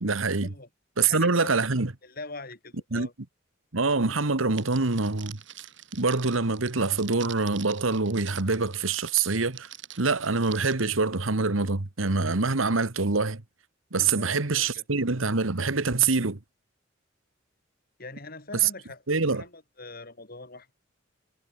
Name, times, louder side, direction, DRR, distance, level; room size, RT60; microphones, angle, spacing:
voice 1, 0.0-0.5 1.0-1.9 2.9-3.1 3.7-5.4 5.9-9.7 10.0-13.4 13.9-16.4 19.1-19.4, right 4 dB, 85° right, 1.6 m, -25 dB
voice 2, 1.0-1.5 2.0-3.1 13.9-14.8 18.0-19.0 19.3-20.7, left 3 dB, 50° left, 4.7 m, -43 dB
Crackle, 4.6-10.7, right 12 dB, 65° right, 6.8 m, -45 dB
head